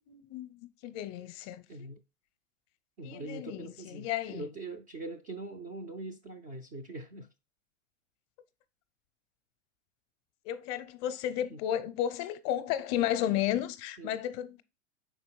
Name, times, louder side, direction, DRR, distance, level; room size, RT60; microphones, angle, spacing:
voice 1, 0.1-1.9 3.0-4.5 10.4-14.6, left 11 dB, 35° left, 0.6 m, -33 dB
voice 2, 1.7-2.0 3.0-7.3 11.5-11.6 14.0-14.2, right 2 dB, 20° right, 0.3 m, -42 dB
5.3 x 4.3 x 4.6 m
hypercardioid pair, 120°, 39 cm